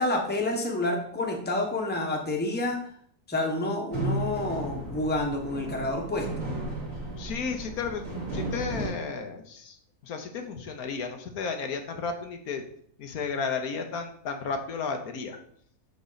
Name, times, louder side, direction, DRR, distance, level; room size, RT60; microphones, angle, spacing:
voice 1, 0.0-2.8 3.3-6.5, left 2 dB, 5° left, 1 dB, 1.0 m, -29 dB
sound 1, 3.9-8.9, right 1 dB, 55° right, 2.3 m, -34 dB
voice 2, 7.2-8.0 8.3-9.8 10.0-12.6 13.0-15.4, left 5 dB, 70° left, 5 dB, 1.3 m, -33 dB
7.1 x 5.4 x 4.0 m, 0.64 s
omnidirectional pair, 1.7 m